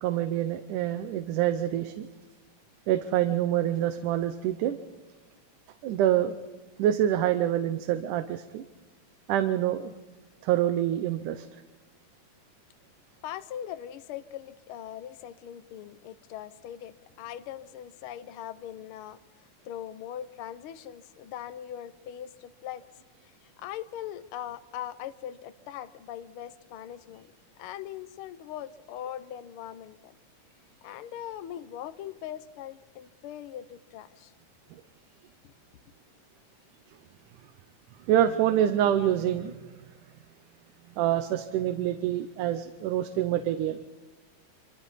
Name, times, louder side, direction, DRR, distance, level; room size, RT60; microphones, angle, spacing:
voice 1, 0.0-2.1 2.9-4.8 5.8-6.3 6.8-8.7 9.3-9.9 10.4-11.5 34.7-34.8 38.1-39.6 41.0-43.8, right 11 dB, 85° right, 9 dB, 2.4 m, -26 dB
voice 2, 13.2-22.9 23.2-27.3 27.6-30.1 30.8-34.3, left 11 dB, 80° left, 11 dB, 1.2 m, -41 dB
28.0 x 26.5 x 4.2 m, 1.2 s
omnidirectional pair, 3.6 m